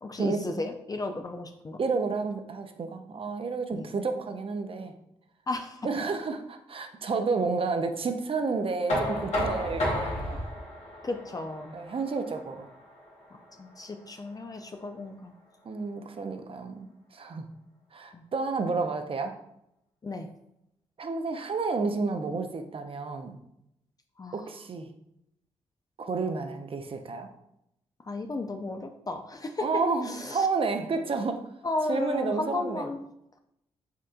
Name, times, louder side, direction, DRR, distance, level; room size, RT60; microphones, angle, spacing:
voice 1, 0.0-1.8 3.7-3.9 5.5-5.9 10.3-10.4 11.0-11.8 13.3-15.3 18.1-18.2 20.0-20.3 24.2-24.4 28.1-29.6 30.1-30.5 31.6-33.0, left 2 dB, 30° left, 6 dB, 0.5 m, -34 dB
voice 2, 1.8-4.9 5.8-10.4 11.7-12.7 15.6-16.9 17.1-17.5 17.9-19.3 21.0-23.4 24.3-24.9 26.0-27.3 29.6-31.4 31.9-32.8, right 4 dB, 50° right, 6 dB, 0.6 m, -30 dB
Knock, 8.9-14.7, equal, 65° left, 1.5 m, -33 dB
4.5 x 3.6 x 2.4 m, 0.81 s
supercardioid pair, 50°, 12 cm